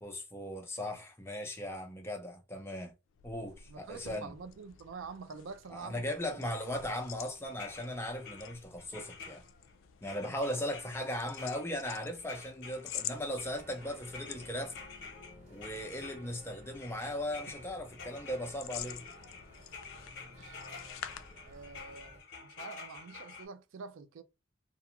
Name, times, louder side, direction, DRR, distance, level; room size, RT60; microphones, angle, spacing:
voice 1, 0.0-2.9 3.2-4.3 5.7-9.4 10.0-14.7 15.5-19.0, left 1 dB, 10° left, 0.5 m, -38 dB
sound 1, 3.1-22.0, left 11 dB, 75° left, 0.3 m, -49 dB
voice 2, 3.7-6.5 10.2-10.7 20.2-20.6 21.4-24.2, right 5 dB, 70° right, 0.4 m, -47 dB
sound 2, 7.4-9.7 10.0-16.5 16.7-23.5, left 5 dB, 55° left, 0.8 m, -50 dB
sound 3, 12.9-22.2, equal, 35° right, 1.3 m, -55 dB
2.4 x 2.3 x 2.9 m
head